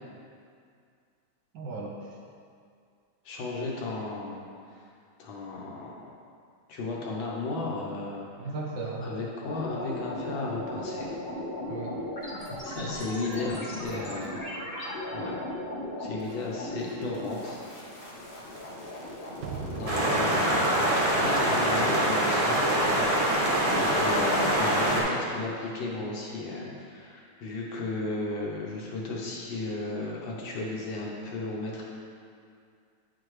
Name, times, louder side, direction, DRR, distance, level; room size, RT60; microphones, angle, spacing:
voice 1, 1.5-2.1 8.4-9.1 11.7-11.9 13.4-13.6 23.7-23.9, right 3 dB, 65° right, -2 dB, 1.2 m, -36 dB
voice 2, 3.2-4.4 4.7-4.8 5.2-6.1 6.7-8.5 9.0-11.1 12.6-14.4 15.1-15.4 16.0-17.6 19.8-22.6 23.8-31.8, left 2 dB, 70° left, -3 dB, 1.6 m, -34 dB
sound 1, 9.4-24.0, left 1 dB, 35° left, 1.0 m, -38 dB
sound 2, 19.4-23.4, right 5 dB, 85° right, 0.8 m, -42 dB
sound 3, 19.9-25.0, right 1 dB, 35° right, 0.5 m, -24 dB
8.5 x 4.6 x 3.2 m, 2.3 s
omnidirectional pair, 2.3 m